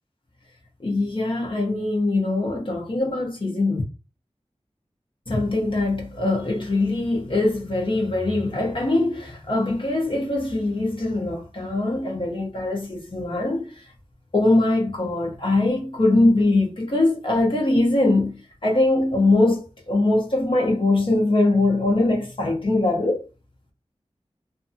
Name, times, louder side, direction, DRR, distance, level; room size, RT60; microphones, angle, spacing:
voice 1, 0.8-3.8 5.3-13.7 14.3-18.4 18.6-23.2, left 2 dB, 50° left, 0.9 m, -22 dB
2.7 x 2.4 x 2.7 m
wide cardioid pair, 55°, 11 cm